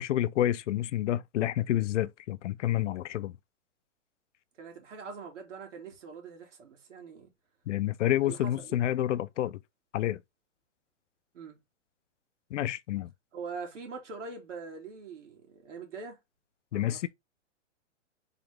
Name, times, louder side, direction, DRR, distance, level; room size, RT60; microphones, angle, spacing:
voice 1, 0.0-3.3 7.7-9.6 9.9-10.2 12.5-13.1 16.7-17.1, left 13 dB, 75° left, 0.5 m, -29 dB
voice 2, 4.6-7.3 8.2-8.8 11.3-11.6 13.3-16.2 16.7-17.0, right 5 dB, 75° right, 2.5 m, -43 dB
4.0 x 3.6 x 3.4 m
hypercardioid pair, 165°, 37 cm